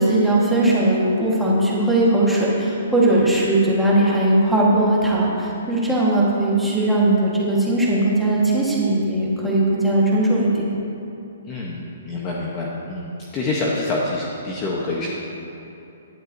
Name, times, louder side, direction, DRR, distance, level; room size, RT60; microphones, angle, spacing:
voice 1, 0.0-10.6, right 1 dB, ahead, -7 dB, 1.4 m, -19 dB
voice 2, 11.5-11.8 12.1-13.1 13.3-15.1, left 2 dB, 15° left, -4 dB, 0.8 m, -26 dB
17.0 x 11.0 x 2.6 m, 2.9 s
hypercardioid pair, 180°, 0 cm